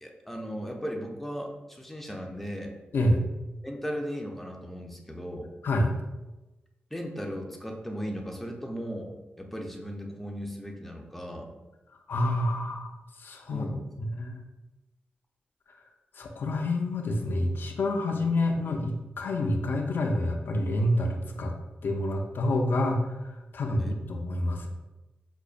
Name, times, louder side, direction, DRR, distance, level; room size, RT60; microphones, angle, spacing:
voice 1, 0.0-2.7 3.6-5.5 6.9-11.5 13.5-13.9 18.1-18.2 23.8-24.0, equal, 5° left, 1 dB, 0.5 m, -37 dB
voice 2, 12.1-12.9 13.2-13.7 14.0-14.4 16.1-21.5 21.8-24.7, left 1 dB, 65° left, 3 dB, 0.4 m, -28 dB
4.9 x 2.1 x 2.4 m, 1.1 s
cardioid pair, 75°, 4 cm